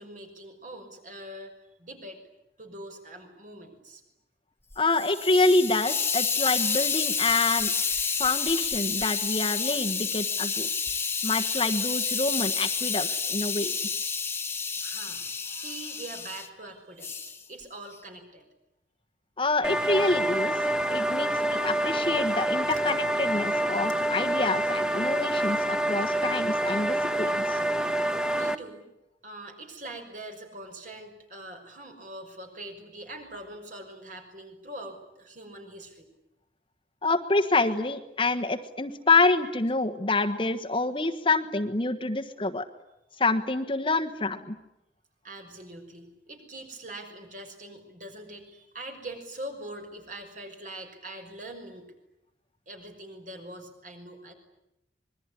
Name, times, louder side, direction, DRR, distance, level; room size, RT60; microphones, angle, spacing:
voice 1, 0.0-1.5 1.8-2.2 2.6-4.0 14.8-18.5 22.7-22.9 28.1-28.9 29.2-36.1 45.2-51.9 52.7-54.3, right 1 dB, 45° right, 4 dB, 6.0 m, -43 dB
Hiss, 4.7-16.5 17.0-17.4, left 5 dB, 15° left, 1.6 m, -29 dB
voice 2, 4.8-7.7 8.2-10.7 11.2-13.8 19.4-27.6 37.0-42.7 43.2-44.6, left 3 dB, 30° left, 6 dB, 1.4 m, -27 dB
sound 1, 19.6-28.5, right 1 dB, 5° right, 1.2 m, -27 dB
25.5 x 22.5 x 9.9 m, 0.87 s
head